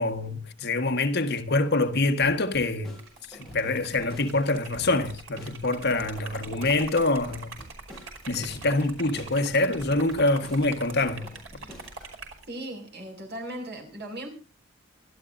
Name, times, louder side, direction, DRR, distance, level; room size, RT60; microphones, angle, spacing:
voice 1, 0.0-3.0 3.3-7.6 8.3-11.3, left 2 dB, 55° left, 1.5 m, -25 dB
sound 1, 2.2-12.2, equal, ahead, 6.3 m, -47 dB
Liquid, 2.9-12.4, right 4 dB, 85° right, 5.3 m, -44 dB
voice 2, 12.5-14.3, right 1 dB, 55° right, 6.1 m, -37 dB
28.5 x 12.5 x 2.7 m
head